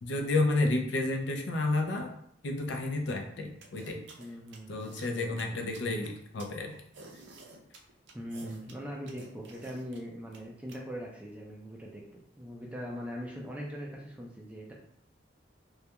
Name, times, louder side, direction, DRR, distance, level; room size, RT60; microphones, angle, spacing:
voice 1, 0.0-2.1 2.4-4.0 4.7-6.7, left 2 dB, 70° left, 3 dB, 0.4 m, -31 dB
sound 1, 3.6-10.8, right 3 dB, 70° right, 0.4 m, -51 dB
voice 2, 4.2-5.6 8.1-14.7, equal, 5° right, -2 dB, 0.4 m, -41 dB
2.3 x 2.2 x 2.8 m, 0.67 s
head